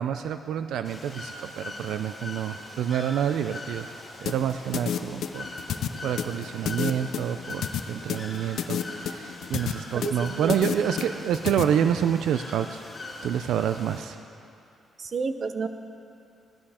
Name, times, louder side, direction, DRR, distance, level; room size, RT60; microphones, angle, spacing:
voice 1, 0.0-3.9 4.2-5.5 6.0-12.8 13.2-14.2, right 9 dB, 85° right, 9 dB, 0.4 m, -28 dB
Bird / Water, 0.8-14.0, left 2 dB, 25° left, 2.6 m, -41 dB
sound 1, 4.3-11.6, left 9 dB, 75° left, 0.6 m, -30 dB
voice 2, 9.9-10.7 15.0-15.7, right 4 dB, 45° right, 9 dB, 0.7 m, -31 dB
17.0 x 12.0 x 4.3 m, 2.6 s
cardioid pair, 110°, 0 cm